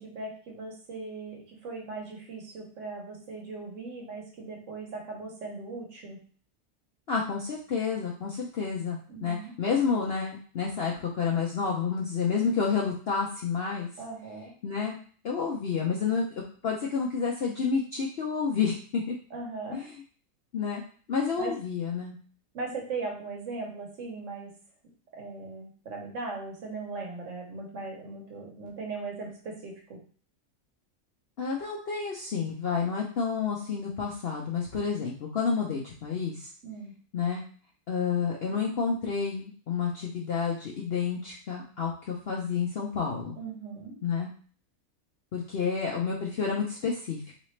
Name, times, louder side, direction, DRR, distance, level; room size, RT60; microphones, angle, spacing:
voice 1, 0.0-6.2 9.1-9.5 14.0-14.5 19.3-19.9 21.4-21.5 22.5-24.5 25.1-30.0 36.6-36.9 43.4-43.9, right 3 dB, 55° right, 0 dB, 1.4 m, -38 dB
voice 2, 7.1-13.9 14.6-15.0 15.2-19.2 19.7-20.0 20.5-20.8 21.1-22.2 31.4-36.5 37.1-37.4 37.9-43.4 44.0-44.3 45.3-47.2, left 5 dB, 60° left, -2 dB, 0.6 m, -30 dB
4.0 x 3.2 x 3.1 m, 0.43 s
omnidirectional pair, 1.7 m